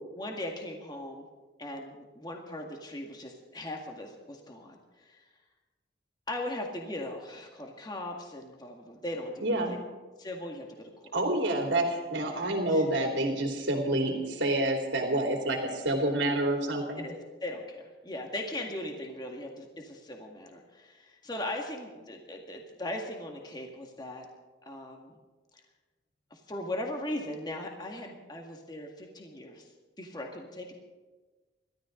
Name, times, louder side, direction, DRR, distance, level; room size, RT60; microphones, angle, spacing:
voice 1, 0.1-1.2 1.6-5.3 6.3-9.8 10.2-11.1 12.7-12.9 13.9-14.0 16.9-24.3 24.7-25.2 26.3-29.7 30.0-30.8, left 1 dB, 20° left, 1 dB, 2.0 m, -39 dB
voice 2, 9.4-9.7 11.1-17.0, right 1 dB, 85° right, 1 dB, 2.9 m, -28 dB
28.0 x 13.0 x 3.9 m, 1.3 s
head